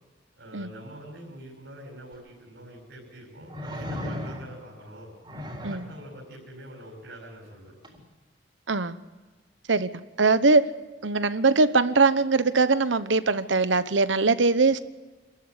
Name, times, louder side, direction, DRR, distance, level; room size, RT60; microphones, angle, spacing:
voice 1, 0.4-5.1 5.7-7.8, right 1 dB, 65° right, -3 dB, 6.2 m, -44 dB
sound 1, 2.1-2.2 3.5-4.7 5.2-5.9 7.8-8.0, left 1 dB, 25° right, 4.1 m, -35 dB
voice 2, 9.7-10.7 11.0-14.8, right 3 dB, 80° right, 13 dB, 1.0 m, -21 dB
27.0 x 14.5 x 9.7 m, 1.3 s
head